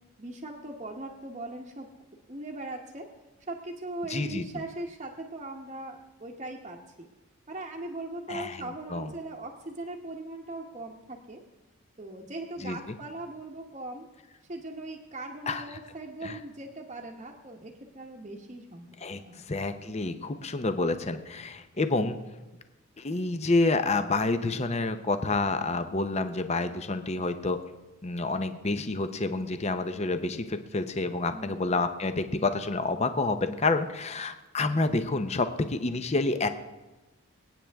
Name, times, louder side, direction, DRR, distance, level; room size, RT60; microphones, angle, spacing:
voice 1, 0.2-1.9 2.3-3.1 3.5-7.1 7.5-11.4 12.0-14.1 14.5-19.4 20.1-20.5 31.3-31.8, right 2 dB, 30° right, -4 dB, 1.0 m, -40 dB
voice 2, 4.1-4.6 8.3-9.1 12.6-12.9 15.5-15.6 16.2-16.4 19.0-22.2 23.0-27.6 28.0-36.5, left 3 dB, 30° left, 9 dB, 0.7 m, -29 dB
26.5 x 8.9 x 3.5 m, 1.1 s
head